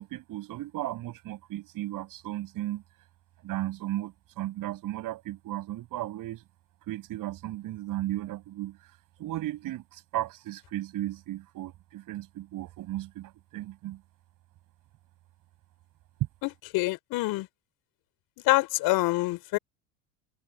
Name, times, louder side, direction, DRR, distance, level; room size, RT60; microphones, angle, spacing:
voice 1, 0.0-2.8 3.4-6.4 6.8-8.8 9.2-14.0, right 15 dB, 50° right, 7.9 m, -35 dB
voice 2, 16.7-17.5 18.5-19.6, left 20 dB, 60° left, 5.0 m, -25 dB
supercardioid pair, 100°, 41 cm